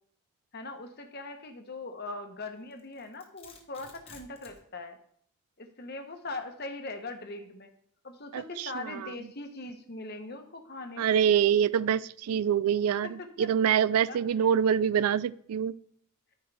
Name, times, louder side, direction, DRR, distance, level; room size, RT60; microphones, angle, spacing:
voice 1, 0.5-5.0 5.6-7.7 8.0-11.3 13.2-13.5 13.9-14.2, left 2 dB, 45° left, 1.1 m, -41 dB
Domestic sounds home sounds, 2.7-4.6, left 4 dB, 25° left, 1.2 m, -52 dB
voice 2, 8.3-9.1 11.0-15.7, right 8 dB, 80° right, 0.3 m, -25 dB
13.5 x 4.7 x 3.4 m
head